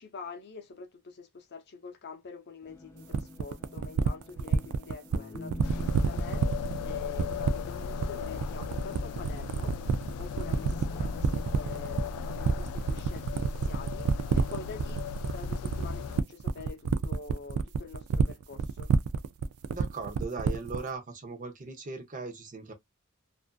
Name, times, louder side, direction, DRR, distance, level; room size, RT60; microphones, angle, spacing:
voice 1, 0.0-9.8 10.2-15.0 15.3-18.9, left 4 dB, 50° left, 0.7 m, -46 dB
sound 1, 2.6-12.5, left 1 dB, 10° left, 0.4 m, -46 dB
sound 2, 3.1-20.9, right 6 dB, 80° right, 0.3 m, -28 dB
sound 3, 5.6-16.2, left 5 dB, 85° left, 0.3 m, -37 dB
voice 2, 19.7-22.7, right 4 dB, 35° right, 0.7 m, -38 dB
2.5 x 2.4 x 2.2 m
head